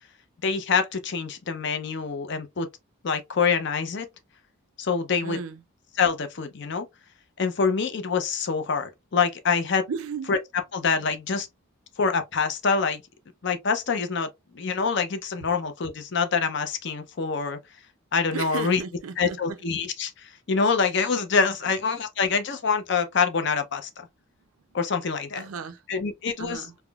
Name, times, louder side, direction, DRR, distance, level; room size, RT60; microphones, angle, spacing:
voice 1, 0.4-2.7 3.0-4.1 4.8-5.4 6.0-6.9 7.4-9.8 10.3-10.4 10.7-11.5 12.0-13.0 13.4-14.3 14.5-17.6 18.1-18.8 19.2-23.9 24.7-25.4 25.9-26.6, left 5 dB, 55° left, 0.5 m, -25 dB
voice 2, 5.2-5.6 9.9-10.3 18.3-19.6 21.6-21.8 25.4-25.8 26.4-26.7, right 5 dB, 85° right, 0.5 m, -35 dB
3.5 x 2.1 x 2.2 m
head